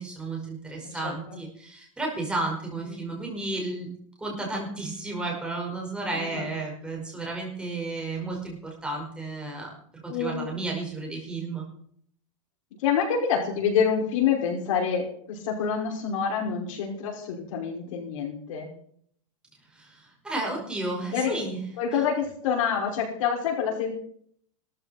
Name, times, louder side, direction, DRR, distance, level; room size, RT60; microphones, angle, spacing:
voice 1, 0.0-3.9 4.2-11.6 19.7-21.6, right 2 dB, 5° right, -1 dB, 5.2 m, -33 dB
voice 2, 0.8-1.4 2.9-3.1 6.2-6.5 10.1-10.5 12.8-18.7 21.1-21.5 21.8-23.9, left 7 dB, 70° left, 1 dB, 5.6 m, -27 dB
17.5 x 14.0 x 4.4 m, 0.62 s
supercardioid pair, 155°, 17 cm